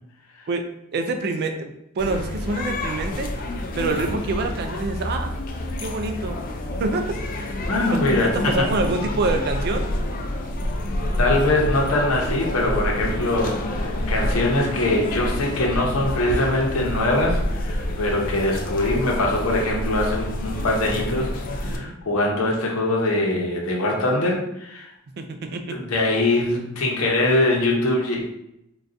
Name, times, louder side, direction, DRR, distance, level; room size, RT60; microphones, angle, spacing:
voice 1, 0.9-3.3 3.7-5.4 5.8-6.4 6.8-7.1 7.4-7.5 7.9-9.9 21.6-22.0 25.2-25.8, right 2 dB, 50° right, 5 dB, 0.3 m, -26 dB
sound 1, 2.0-21.8, left 1 dB, 40° left, 0.3 m, -28 dB
voice 2, 7.7-8.7 11.2-24.9 25.7-28.3, left 2 dB, 80° left, -1 dB, 0.8 m, -22 dB
3.9 x 2.3 x 2.5 m, 0.81 s
head